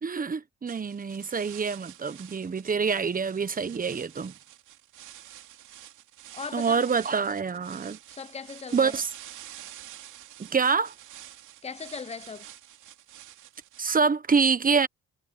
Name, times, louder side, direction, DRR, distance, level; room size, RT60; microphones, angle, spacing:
voice 1, 0.0-4.3 6.5-8.0 8.7-9.1 10.4-10.9 13.8-14.9, right 5 dB, 30° right, 1.2 m, -26 dB
sound 1, 0.7-14.0, right 12 dB, 80° right, 2.9 m, -48 dB
voice 2, 6.3-6.9 8.1-9.0 11.6-12.5, left 5 dB, 20° left, 0.9 m, -38 dB
cardioid pair, 90°, 30 cm